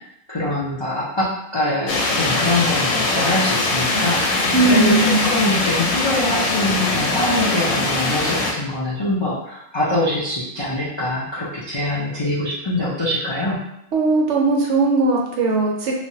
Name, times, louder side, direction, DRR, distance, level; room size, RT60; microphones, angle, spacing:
voice 1, 0.3-13.6, left 1 dB, 45° left, -8 dB, 0.3 m, -24 dB
sound 1, 1.9-8.5, left 2 dB, 90° left, 1.1 m, -21 dB
voice 2, 4.5-5.3 13.9-15.9, right 2 dB, 65° right, -1 dB, 0.8 m, -18 dB
3.1 x 2.2 x 2.7 m, 0.80 s
omnidirectional pair, 1.4 m